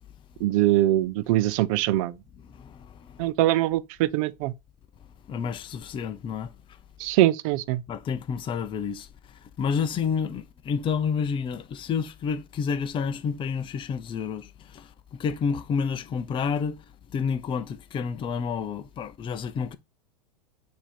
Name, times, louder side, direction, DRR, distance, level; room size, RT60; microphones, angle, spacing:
voice 1, 0.4-2.2 3.2-4.5 7.0-7.8, right 15 dB, 55° right, 0.6 m, -23 dB
voice 2, 2.5-3.3 5.3-6.5 7.9-9.1 9.6-16.8 17.1-19.8, left 6 dB, 25° left, 0.6 m, -29 dB
7.3 x 2.9 x 5.1 m
hypercardioid pair, 105°, 20 cm